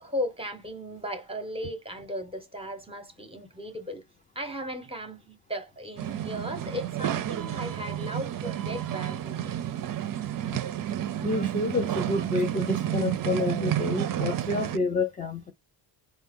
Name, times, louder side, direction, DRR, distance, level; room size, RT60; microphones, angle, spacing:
voice 1, 0.0-4.0 4.3-9.5, equal, 10° right, 0.7 m, -36 dB
sound 1, 6.0-14.8, right 11 dB, 45° right, 0.4 m, -30 dB
voice 2, 11.2-15.5, left 3 dB, 20° left, 0.4 m, -29 dB
4.3 x 2.1 x 3.5 m
wide cardioid pair, 165°, 47 cm